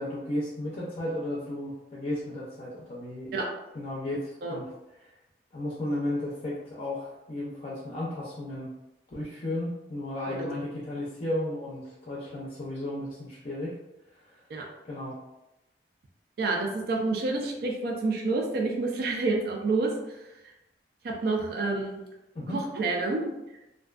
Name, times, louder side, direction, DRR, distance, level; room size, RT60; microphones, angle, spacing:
voice 1, 0.0-3.3 3.7-4.7 5.0-5.1 5.5-8.7 9.1-13.7 14.1-14.4 14.8-15.2 22.3-22.6, left 1 dB, 40° left, -6 dB, 0.4 m, -34 dB
voice 2, 16.4-19.9 21.0-22.0 22.5-23.3, right 3 dB, 60° right, 0 dB, 0.4 m, -28 dB
2.5 x 2.2 x 2.3 m, 0.94 s
head